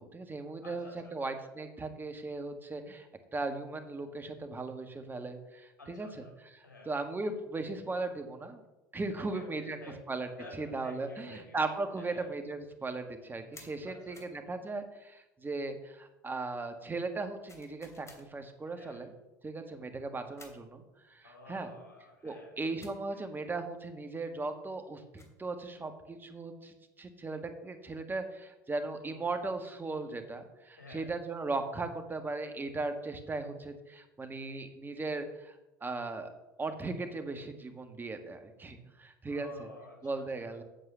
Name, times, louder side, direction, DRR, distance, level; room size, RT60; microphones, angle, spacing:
voice 1, 0.0-0.8 1.1-6.1 6.5-8.6 8.9-9.8 10.1-10.3 10.6-19.1 19.4-21.7 22.2-36.3 36.6-39.5 40.0-40.6, right 3 dB, 20° right, 7 dB, 1.7 m, -37 dB
voice 2, 0.6-1.2 5.8-6.3 6.6-6.9 9.2-11.6 11.9-12.3 13.8-14.3 18.7-19.0 21.2-22.7 23.1-23.3 29.0-29.2 30.8-31.1 39.3-40.6, left 2 dB, 85° left, 0 dB, 3.5 m, -51 dB
sound 1, 13.5-13.8 14.1-14.4 17.5-18.3 20.4-20.7 22.8-23.0 24.9-25.4, left 3 dB, 30° left, 3.0 m, -54 dB
9.0 x 7.4 x 6.9 m, 0.99 s
hypercardioid pair, 75°, 10 cm